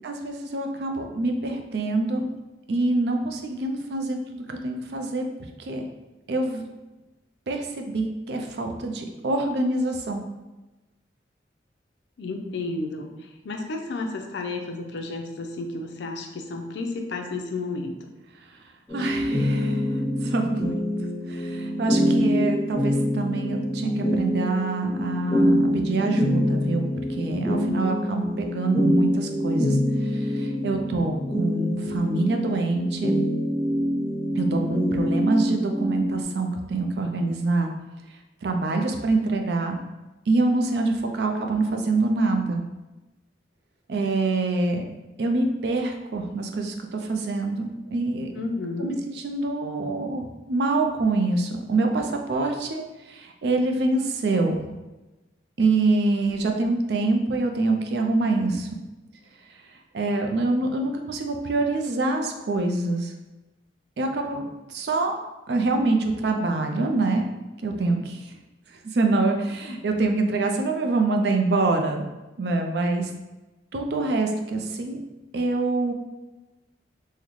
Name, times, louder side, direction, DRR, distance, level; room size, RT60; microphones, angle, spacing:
voice 1, 0.0-2.3 2.7-4.2 4.5-5.3 5.6-5.8 6.3-6.6 7.5-10.2 18.9-19.9 20.2-20.7 21.3-33.2 34.4-37.7 38.4-39.8 40.3-42.6 43.9-44.9 45.2-48.3 48.8-52.8 53.1-54.6 55.6-58.7 59.9-63.1 64.0-65.2 65.5-67.3 67.6-68.3 68.9-72.0 72.4-73.1 73.7-75.0 75.3-75.9, right 3 dB, 65° right, 4 dB, 0.4 m, -25 dB
voice 2, 12.2-13.1 13.4-17.9 48.3-49.0, left 3 dB, 75° left, 3 dB, 0.4 m, -31 dB
sound 1, 18.9-36.2, equal, 10° left, 1.1 m, -25 dB
3.7 x 2.1 x 3.0 m, 1.1 s
head